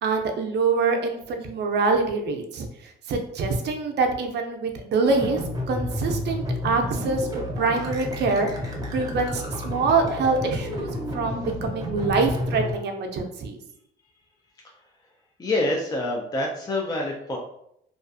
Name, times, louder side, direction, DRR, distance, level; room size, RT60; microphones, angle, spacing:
voice 1, 0.0-5.4 5.7-10.9 11.1-13.6, right 4 dB, 60° right, 4 dB, 0.5 m, -25 dB
sound 1, 5.0-12.7, left 1 dB, 20° right, 0.7 m, -31 dB
voice 2, 15.4-17.4, left 2 dB, 20° left, 0 dB, 0.4 m, -26 dB
2.4 x 2.3 x 2.5 m, 0.74 s
cardioid pair, 90°, 20 cm